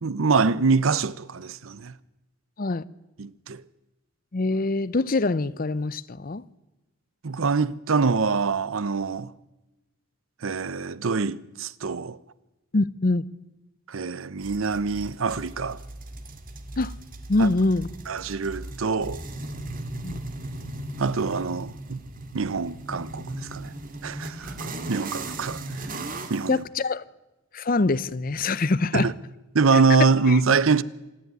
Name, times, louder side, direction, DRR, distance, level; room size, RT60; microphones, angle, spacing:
voice 1, 0.0-1.9 3.2-3.6 7.2-9.3 10.4-12.2 13.9-15.8 17.4-17.5 18.1-19.2 21.0-22.0 22.3-23.7 24.0-25.8 26.3-26.6 28.9-29.1 29.5-30.8, right 4 dB, 70° right, 0.7 m, -24 dB
voice 2, 4.3-6.4 12.7-13.2 16.8-16.9 17.3-17.9 20.0-20.2 24.4-24.6 26.5-27.0 27.5-29.1 30.3-30.4, left 2 dB, 40° left, 0.6 m, -24 dB
sound 1, 14.4-26.5, right 2 dB, 40° right, 1.9 m, -37 dB
26.0 x 11.0 x 9.4 m
head